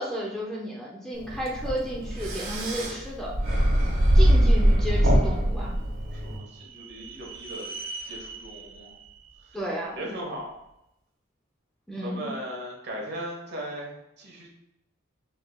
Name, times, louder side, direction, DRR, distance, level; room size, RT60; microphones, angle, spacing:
voice 1, 0.0-3.3 4.1-5.7 9.5-10.1 11.9-12.3, equal, 5° left, -4 dB, 0.6 m, -33 dB
sound 1, 1.2-6.4, equal, 85° right, 1.4 m, -22 dB
sound 2, 5.4-10.5, right 3 dB, 25° right, 1.4 m, -43 dB
voice 2, 6.1-7.7 8.0-8.9 10.0-10.5 12.0-14.5, right 1 dB, 55° right, -2 dB, 1.2 m, -38 dB
5.6 x 3.4 x 2.3 m, 0.83 s
head